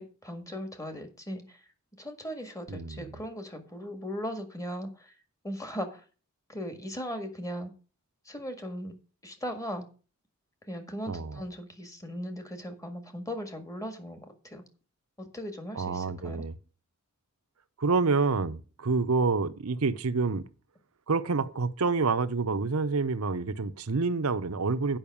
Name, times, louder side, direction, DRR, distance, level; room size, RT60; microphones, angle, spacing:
voice 1, 0.0-1.6 2.0-5.1 5.4-6.0 6.5-7.7 8.3-8.9 9.2-9.9 10.7-14.6 15.2-16.5, equal, 15° left, 1.7 m, -38 dB
voice 2, 2.7-3.2 11.1-11.4 15.7-16.6 17.8-20.4 21.1-25.0, right 4 dB, 75° right, 0.7 m, -28 dB
8.7 x 5.7 x 7.0 m
head